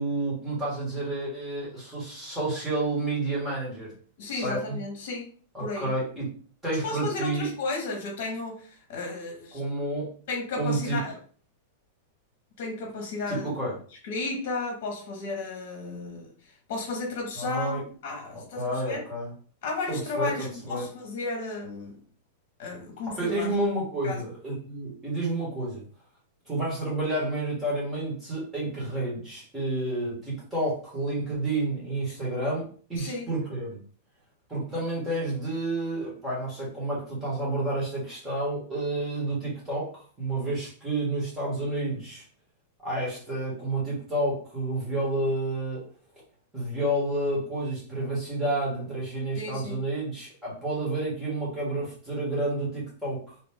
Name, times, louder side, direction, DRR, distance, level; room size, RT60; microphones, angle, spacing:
voice 1, 0.0-3.9 4.3-4.8 5.5-6.3 6.6-7.5 9.5-10.1 10.5-11.0 13.3-13.7 17.4-17.8 18.6-19.3 19.9-20.9 23.2-25.8 26.5-33.8 34.5-42.2 42.8-45.8 46.5-53.2, right 2 dB, 5° right, 1.4 m, -30 dB
voice 2, 4.2-5.3 5.6-5.9 6.8-9.6 10.3-11.2 12.6-13.7 14.0-19.0 19.6-22.0 22.6-23.5 24.0-24.2 33.0-33.3 49.3-49.8, left 3 dB, 45° left, 1.1 m, -34 dB
2.9 x 2.6 x 3.5 m
supercardioid pair, 180°, 0 cm